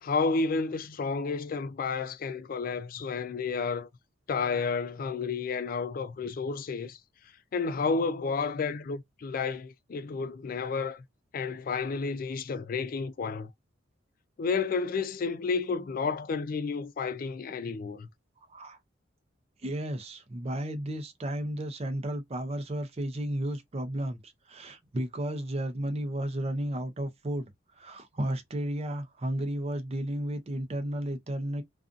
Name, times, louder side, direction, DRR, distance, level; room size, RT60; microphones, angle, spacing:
voice 1, 0.0-3.9 4.3-7.0 7.5-11.0 11.3-13.5 14.4-18.1, left 4 dB, 50° left, 0.3 m, -31 dB
voice 2, 18.4-18.8 19.6-31.6, right 1 dB, 35° right, 0.6 m, -33 dB
2.5 x 2.4 x 2.4 m
head